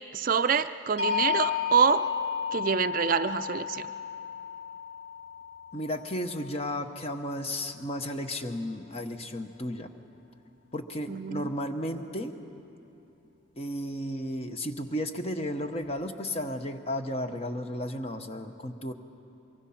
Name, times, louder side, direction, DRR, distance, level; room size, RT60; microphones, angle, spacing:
voice 1, 0.1-2.1 2.5-3.9 11.1-11.4, right 6 dB, 45° right, 11 dB, 0.4 m, -26 dB
sound 1, 1.0-7.0, left 7 dB, 85° left, 7.4 m, -33 dB
voice 2, 5.7-9.9 10.7-12.4 13.6-18.9, left 1 dB, 30° left, 7 dB, 1.0 m, -33 dB
25.0 x 23.0 x 5.8 m, 2.9 s
head